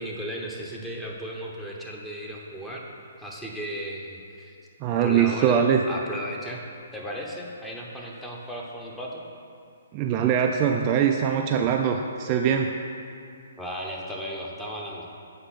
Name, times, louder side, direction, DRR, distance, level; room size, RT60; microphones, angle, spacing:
voice 1, 0.0-2.8 3.2-4.6 5.0-5.6 5.9-6.6 6.9-9.3 13.6-15.1, equal, 5° left, -3 dB, 0.9 m, -35 dB
voice 2, 4.8-5.8 9.9-12.7, right 8 dB, 30° right, 3 dB, 0.3 m, -22 dB
7.8 x 5.1 x 4.2 m, 2.4 s
hypercardioid pair, 135°, 0 cm